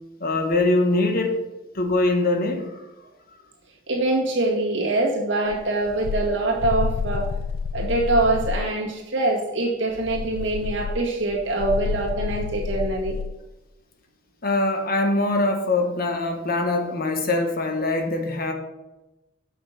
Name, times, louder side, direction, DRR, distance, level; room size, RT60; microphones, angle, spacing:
voice 1, 0.2-1.4 1.7-2.8 14.4-18.5, left 2 dB, 50° left, 4 dB, 1.2 m, -23 dB
voice 2, 3.9-7.3 7.7-13.2, right 2 dB, 65° right, -3 dB, 1.8 m, -24 dB
sound 1, 5.5-8.7 9.9-13.4, left 5 dB, 90° left, 0.3 m, -29 dB
6.5 x 5.8 x 5.7 m, 1.0 s
head